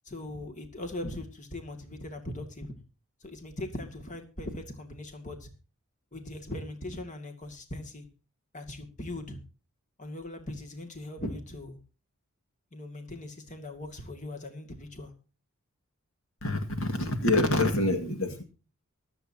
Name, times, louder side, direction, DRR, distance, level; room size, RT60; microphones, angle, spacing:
voice 1, 0.1-2.7 3.2-5.5 6.1-8.1 8.5-9.4 10.0-11.8 12.7-15.1, left 1 dB, 35° left, 5 dB, 2.2 m, -39 dB
voice 2, 16.4-18.4, left 2 dB, 65° left, 6 dB, 2.0 m, -26 dB
24.5 x 8.3 x 2.8 m, 0.34 s
head